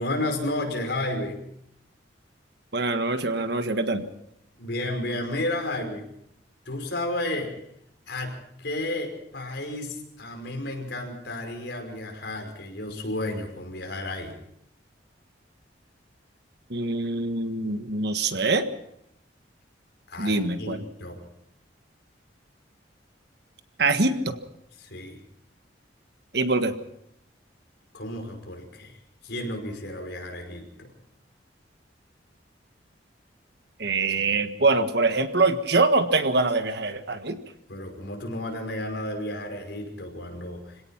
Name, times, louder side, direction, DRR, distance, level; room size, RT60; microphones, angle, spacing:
voice 1, 0.0-1.4 4.6-6.0 6.7-7.5 8.1-14.4 20.1-21.2 24.8-25.2 27.9-29.0 29.2-30.9 37.7-40.8, left 1 dB, 65° left, 3 dB, 5.5 m, -32 dB
voice 2, 2.7-4.0 16.7-18.7 20.2-20.8 23.8-24.4 26.3-26.7 33.8-37.4, right 3 dB, 60° right, 8 dB, 1.6 m, -24 dB
25.5 x 17.5 x 5.9 m, 0.77 s
head